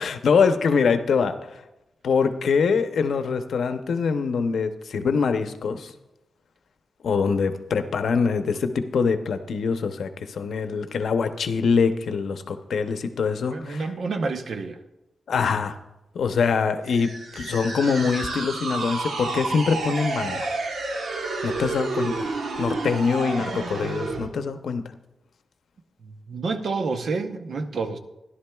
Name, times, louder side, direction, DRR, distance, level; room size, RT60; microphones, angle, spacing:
voice 1, 0.0-1.3 2.0-5.9 7.0-13.8 15.3-15.7 16.1-17.1 17.4-20.5 21.4-22.3 22.6-24.8, left 5 dB, 85° left, 8 dB, 0.7 m, -24 dB
voice 2, 13.5-14.8 26.0-28.0, right 4 dB, 60° right, 8 dB, 0.7 m, -29 dB
sound 1, 16.8-24.3, right 3 dB, 80° right, 1.1 m, -30 dB
16.0 x 11.0 x 2.3 m, 0.95 s
wide cardioid pair, 165°, 0 cm